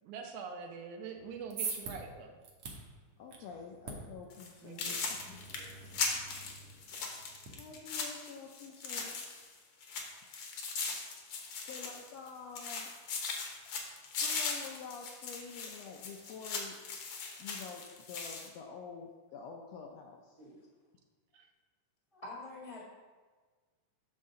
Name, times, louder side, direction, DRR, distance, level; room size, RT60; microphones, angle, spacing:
voice 1, 0.0-2.4 4.6-5.0 21.3-21.5, right 5 dB, 80° right, 4 dB, 2.2 m, -44 dB
sound 1, 1.2-7.5, right 4 dB, 60° right, 1.8 m, -46 dB
voice 2, 3.2-5.5 7.6-9.2 11.6-12.9 14.1-16.8 17.4-20.4, left 5 dB, 80° left, 1 dB, 1.5 m, -48 dB
sound 2, 4.3-4.5 4.8-9.5 9.8-12.3 12.6-18.5, left 4 dB, 60° left, 1.5 m, -39 dB
voice 3, 22.1-22.8, left 2 dB, 15° left, -4 dB, 1.1 m, -46 dB
8.3 x 6.3 x 3.7 m, 1.4 s
omnidirectional pair, 3.5 m